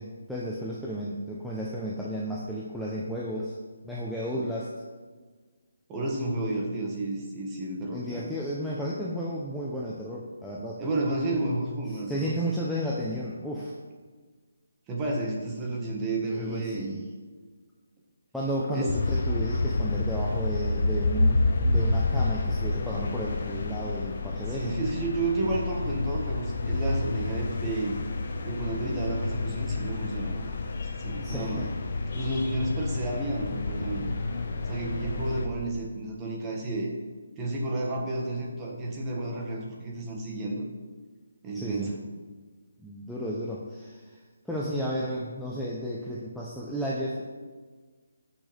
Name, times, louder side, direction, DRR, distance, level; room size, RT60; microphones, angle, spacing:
voice 1, 0.0-3.5 3.8-4.7 7.9-10.8 11.9-13.7 16.2-17.0 18.3-24.8 25.4-25.5 31.2-31.7 41.5-41.9 42.8-44.2 44.4-47.2, equal, ahead, -7 dB, 0.8 m, -33 dB
voice 2, 5.9-8.3 10.8-12.3 14.9-16.9 18.7-18.9 24.5-28.0 28.4-30.4 31.0-31.6 32.1-34.0 34.6-36.9 37.4-40.7 41.4-41.9, right 2 dB, 15° right, -2 dB, 1.5 m, -31 dB
sound 1, 18.9-35.4, left 2 dB, 50° left, 1.3 m, -29 dB
16.0 x 6.4 x 3.4 m, 1.5 s
hypercardioid pair, 165°, 0 cm